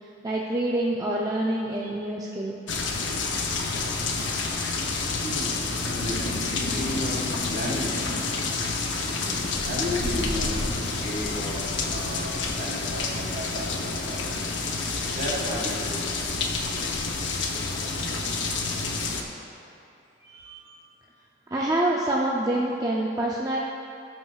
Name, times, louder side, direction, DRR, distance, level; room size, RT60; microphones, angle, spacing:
voice 1, 0.2-2.6 20.5-20.7 21.5-23.6, right 1 dB, 20° right, -4 dB, 0.4 m, -26 dB
sound 1, 2.7-19.2, left 3 dB, 70° left, 0.7 m, -29 dB
voice 2, 4.8-8.7 9.0-14.2 14.7-14.9 15.1-16.1 20.2-20.7, equal, 50° right, -4 dB, 1.9 m, -35 dB
16.0 x 5.8 x 2.4 m, 2.8 s
head